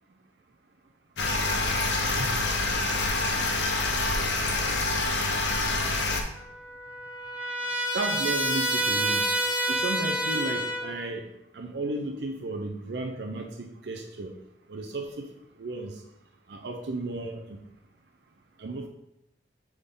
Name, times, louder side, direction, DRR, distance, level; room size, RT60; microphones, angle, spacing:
sound 1, 1.2-6.2, left 2 dB, 70° left, 0.9 m, -26 dB
voice 1, 2.0-2.3 7.9-9.3 9.7-11.2 11.5-14.3 14.7-16.0 16.5-17.6 18.6-18.9, right 2 dB, 65° right, 3 dB, 0.6 m, -34 dB
Trumpet, 6.3-11.1, right 1 dB, 10° right, 0.7 m, -28 dB
7.8 x 3.6 x 3.7 m, 0.83 s
head